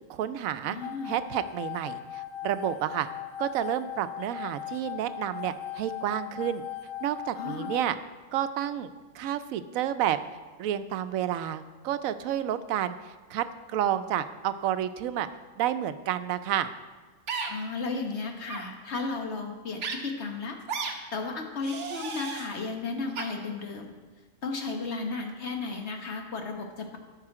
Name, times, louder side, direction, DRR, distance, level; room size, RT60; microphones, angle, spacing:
voice 1, 0.1-0.8 1.0-3.1 3.4-6.6 7.0-7.9 8.3-8.9 9.1-10.2 10.6-13.0 13.3-15.3 15.6-16.7, right 11 dB, 90° right, 12 dB, 1.0 m, -30 dB
voice 2, 0.6-1.1 7.3-7.7 17.5-20.6 21.1-23.9 24.4-27.0, left 4 dB, 55° left, 3 dB, 1.3 m, -34 dB
sound 1, 0.8-7.8, left 12 dB, 75° left, 1.0 m, -39 dB
sound 2, 17.3-17.5 18.4-18.6 19.8-20.0 20.7-20.9 21.6-22.5 23.2-23.3, right 5 dB, 60° right, 1.2 m, -33 dB
13.0 x 5.7 x 4.8 m, 1.3 s
omnidirectional pair, 1.4 m